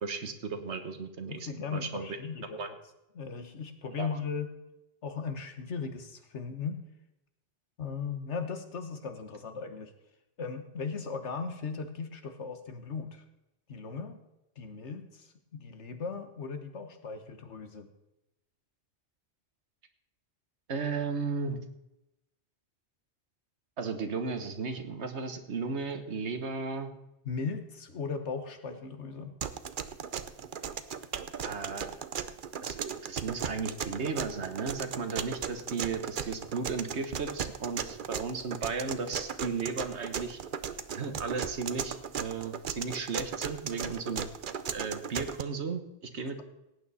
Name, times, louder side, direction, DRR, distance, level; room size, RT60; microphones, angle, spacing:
voice 1, 0.0-2.1 2.6-2.7 4.0-4.1 20.7-21.6 23.8-26.9 31.4-31.9 32.6-40.4 40.9-44.3 44.7-46.4, right 4 dB, 75° right, 8 dB, 1.5 m, -35 dB
voice 2, 1.3-2.7 3.2-4.5 5.0-6.8 7.8-9.9 10.4-13.2 13.7-14.2 14.6-17.9 27.3-29.3, left 5 dB, 85° left, 7 dB, 1.6 m, -37 dB
sound 1, 29.4-45.4, right 7 dB, 55° right, 0.8 m, -36 dB
17.5 x 9.0 x 4.2 m, 0.91 s
omnidirectional pair, 1.1 m